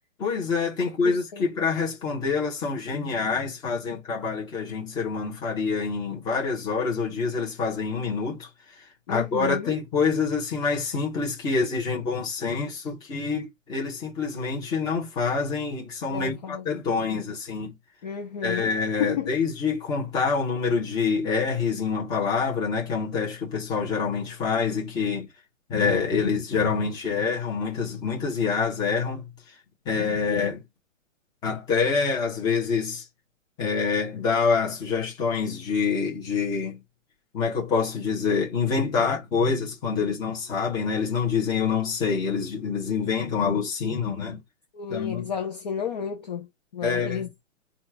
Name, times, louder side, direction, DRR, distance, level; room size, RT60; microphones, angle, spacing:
voice 1, 0.2-8.5 8.8-17.7 18.4-25.3 25.7-29.3 29.8-30.6 31.4-33.0 33.6-36.8 37.3-44.4 44.9-45.2 46.8-47.2, left 5 dB, 10° left, 0.9 m, -26 dB
voice 2, 1.0-1.5 9.1-9.8 16.1-16.7 18.0-18.7 19.0-19.3 44.7-47.3, left 7 dB, 35° left, 0.6 m, -32 dB
4.2 x 2.5 x 4.5 m
hypercardioid pair, 160°, 39 cm